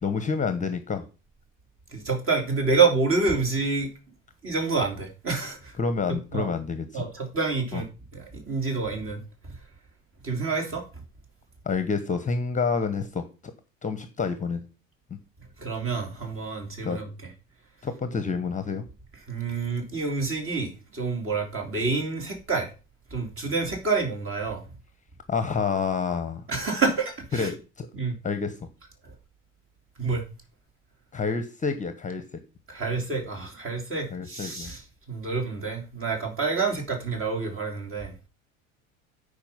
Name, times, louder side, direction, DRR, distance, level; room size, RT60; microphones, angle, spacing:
voice 1, 0.0-1.0 5.8-7.0 7.7-7.8 11.6-13.5 13.8-14.6 16.8-17.0 17.8-18.8 25.3-26.4 27.3-27.9 28.2-28.5 31.1-32.2 34.1-34.7, left 5 dB, 20° left, 1.1 m, -28 dB
voice 2, 1.9-3.9 4.4-5.7 6.3-6.5 6.9-9.6 10.2-10.9 15.6-17.1 19.3-22.7 23.1-24.6 26.5-27.5 27.9-28.2 30.0-30.2 32.7-34.8 35.1-38.1, right 4 dB, 30° right, 3.2 m, -28 dB
8.8 x 5.1 x 5.5 m
figure-of-eight pair, 70°, 40 cm